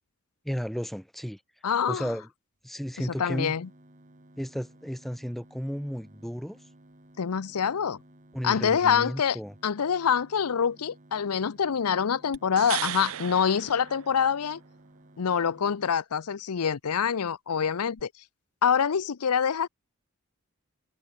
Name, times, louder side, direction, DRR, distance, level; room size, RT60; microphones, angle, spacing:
voice 1, 0.4-1.4 1.9-2.3 2.6-3.5 4.4-6.6 8.3-9.5, equal, ahead, 0.5 m, -33 dB
voice 2, 1.6-2.1 3.2-3.7 7.2-8.0 8.4-14.6 15.2-18.1 18.6-19.7, left 7 dB, 90° left, 0.6 m, -26 dB
sound 1, 3.1-16.0, right 1 dB, 35° right, 2.6 m, -56 dB
sound 2, 12.3-14.6 18.0-18.1, right 12 dB, 70° right, 0.6 m, -36 dB
head